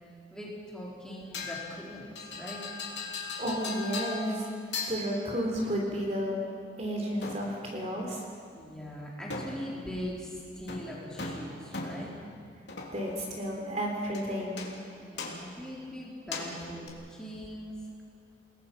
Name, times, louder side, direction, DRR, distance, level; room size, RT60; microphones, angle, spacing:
voice 1, 0.3-2.7 8.5-12.2 15.0-18.0, equal, 5° left, -5 dB, 4.0 m, -41 dB
sound 1, 1.3-1.8 2.1-4.5 4.7-5.4 7.2-7.7 9.3-9.9 10.7-12.3 12.7-13.2 14.1-14.3 14.6-14.9 15.2-15.6 16.3-16.9, left 3 dB, 65° left, 3.4 m, -38 dB
voice 2, 3.4-4.6 4.9-6.4 6.8-8.2 12.9-14.6, equal, 35° right, 0 dB, 3.2 m, -32 dB
29.5 x 19.5 x 5.7 m, 2.3 s
head